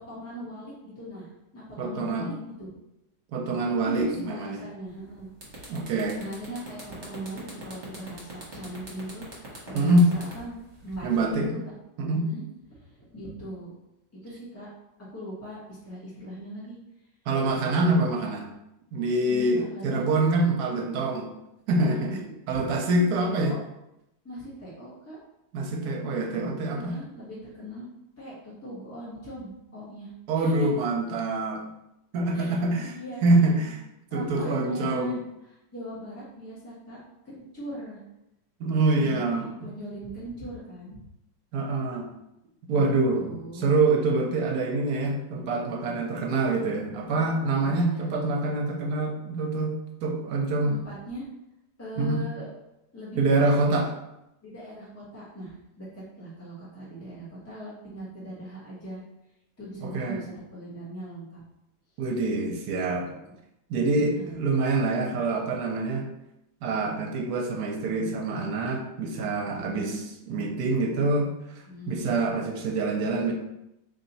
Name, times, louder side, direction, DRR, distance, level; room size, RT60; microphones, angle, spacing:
voice 1, 0.1-2.3 2.6-2.7 3.6-5.3 6.2-11.1 11.5-11.6 12.1-12.4 12.7-13.7 14.2-14.7 15.1-16.7 19.2-20.1 21.9-23.6 24.2-25.2 26.7-27.9 28.2-30.8 32.3-33.2 34.1-37.0 37.2-38.0 38.9-41.0 42.7-42.9 43.2-43.7 47.5-48.2 50.6-51.3 51.8-52.5 52.9-53.6 54.4-59.0 59.6-61.4 62.5-63.3 64.2-64.5 69.4-70.1 71.7-72.1, equal, 10° left, -8 dB, 1.1 m, -39 dB
voice 2, 1.8-2.3 3.3-4.6 5.7-6.2 9.7-10.1 11.0-11.5 12.0-12.3 17.3-18.5 18.9-21.3 21.7-22.2 22.5-23.5 25.5-26.9 30.3-31.6 32.1-33.8 34.1-35.2 38.6-39.5 41.5-42.1 42.7-50.7 52.0-52.2 53.2-53.9 59.8-60.2 62.0-63.1 63.7-66.0 66.6-69.9 70.3-71.3 71.9-73.3, right 2 dB, 75° right, 2 dB, 1.1 m, -25 dB
sound 1, 4.9-5.0 5.3-11.4, right 2 dB, 45° right, 1.3 m, -43 dB
3.2 x 2.8 x 4.0 m, 0.87 s
omnidirectional pair, 1.8 m